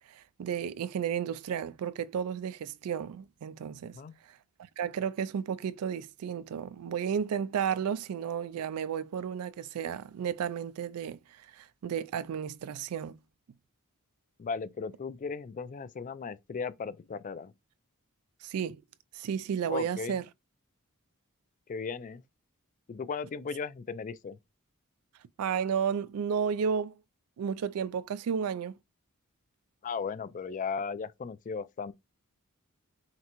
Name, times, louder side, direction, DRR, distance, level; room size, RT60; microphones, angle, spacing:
voice 1, 0.1-4.0 4.8-11.2 11.5-13.2 18.4-18.8 19.1-20.2 25.4-26.9 27.4-28.8, right 7 dB, 80° right, 0.3 m, -32 dB
voice 2, 14.4-17.5 19.7-20.2 21.7-22.2 22.9-24.4 29.8-31.9, left 5 dB, 35° left, 0.3 m, -36 dB
5.8 x 2.1 x 2.9 m
head